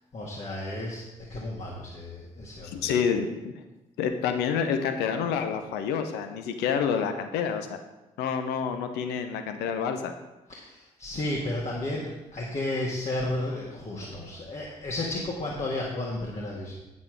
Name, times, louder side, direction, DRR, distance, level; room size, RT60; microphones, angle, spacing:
voice 1, 0.1-2.8 10.5-16.8, left 1 dB, 40° left, -4 dB, 1.9 m, -33 dB
voice 2, 2.6-3.6 4.0-7.8 8.2-10.1, left 7 dB, 70° left, 7 dB, 0.9 m, -28 dB
8.8 x 7.3 x 4.8 m, 1.0 s
figure-of-eight pair, 40°, 18 cm